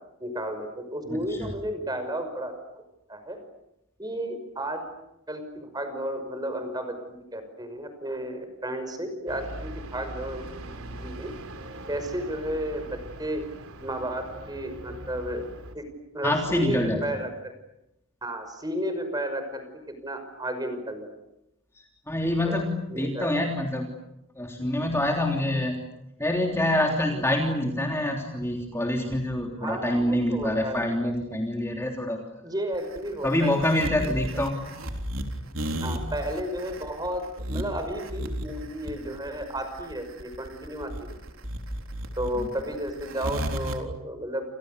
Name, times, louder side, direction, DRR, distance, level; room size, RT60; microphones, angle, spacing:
voice 1, 0.2-2.5 3.1-3.4 4.0-4.8 5.3-10.6 11.0-11.3 11.9-12.8 13.2-13.4 13.8-15.5 15.7-15.8 16.1-17.5 18.2-19.6 20.0-21.1 22.4-22.6 22.9-23.3 27.1-27.3 29.6-31.0 32.4-34.2 35.8-40.9 42.2-44.4, right 1 dB, 20° right, 8 dB, 5.7 m, -32 dB
voice 2, 1.1-1.5 16.2-17.0 22.1-23.9 24.4-25.8 26.2-32.2 33.2-34.6, left 1 dB, 10° left, 1 dB, 3.3 m, -26 dB
sound 1, 9.3-15.8, right 1 dB, 85° right, 3.8 m, -41 dB
sound 2, 32.7-43.8, equal, 70° right, 3.9 m, -33 dB
29.5 x 29.0 x 6.8 m, 0.86 s
head